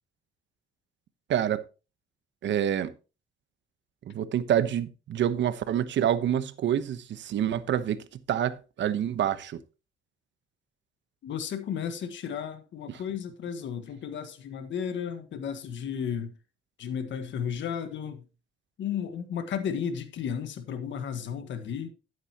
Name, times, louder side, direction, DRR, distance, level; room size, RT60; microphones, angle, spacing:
voice 1, 1.3-1.6 2.4-2.9 4.1-9.6 12.9-13.0, right 10 dB, 65° right, 1.0 m, -27 dB
voice 2, 11.2-16.3 16.8-18.2 18.8-21.9, left 8 dB, 70° left, 1.5 m, -33 dB
11.5 x 9.4 x 2.9 m
cardioid pair, 90°, 20 cm